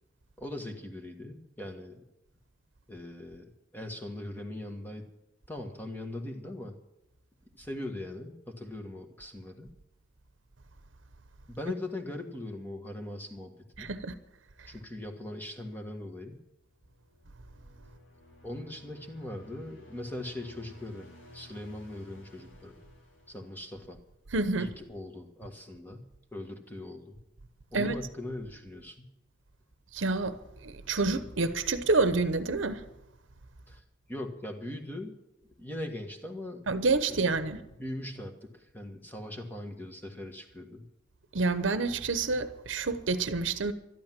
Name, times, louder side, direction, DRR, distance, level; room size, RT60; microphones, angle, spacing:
voice 1, 0.4-2.0 2.9-5.1 5.5-6.8 7.5-9.7 11.5-13.5 13.8-13.9 14.7-16.4 18.4-21.1 21.3-22.8 23.3-24.0 24.6-27.2 27.7-29.1 33.7-33.8 34.1-35.2 35.6-36.6 37.1-37.3 37.8-40.8, left 1 dB, 10° left, 1.5 m, -40 dB
voice 2, 13.8-14.1 24.3-24.7 27.7-28.0 29.9-30.4 30.6-32.8 36.7-37.6 41.3-43.7, right 3 dB, 80° right, 0.9 m, -28 dB
sound 1, 16.7-24.1, left 1 dB, 80° left, 3.4 m, -54 dB
12.5 x 12.0 x 7.6 m
head